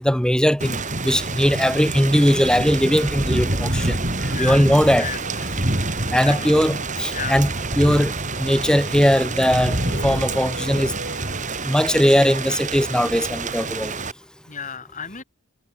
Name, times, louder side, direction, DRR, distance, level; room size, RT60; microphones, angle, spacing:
voice 1, 0.0-4.0 4.4-5.1 6.1-7.5 7.8-8.1 8.4-10.9 11.6-13.9, equal, 5° left, 5.0 m, -19 dB
Thunder / Rain, 0.6-14.1, right 2 dB, 35° right, 5.1 m, -27 dB
Domestic sounds home sounds, 2.9-11.6, right 3 dB, 60° right, 7.6 m, -39 dB
voice 2, 4.3-4.7 5.0-5.5 6.0-6.7 7.1-7.4 14.5-15.2, left 6 dB, 35° left, 4.7 m, -33 dB
head